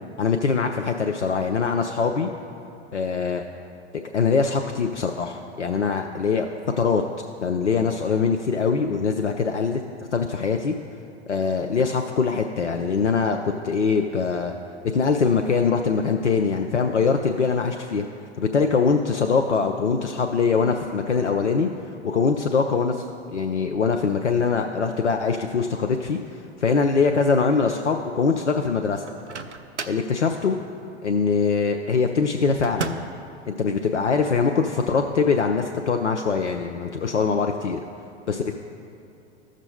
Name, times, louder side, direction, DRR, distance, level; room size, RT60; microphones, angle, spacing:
voice 1, 0.2-2.3 2.9-3.4 4.1-6.5 6.8-7.0 7.4-9.8 10.1-10.8 11.3-14.5 14.9-18.1 18.4-21.7 22.0-23.1 23.3-26.2 26.6-29.0 29.9-30.6 31.0-33.0 33.5-37.8 38.3-38.6, left 5 dB, 85° left, 4 dB, 0.5 m, -23 dB
Microwave oven, 29.1-30.1 32.6-33.2, right 5 dB, 85° right, 0.5 m, -33 dB
15.5 x 6.2 x 2.7 m, 2.8 s
figure-of-eight pair, 95°, 34 cm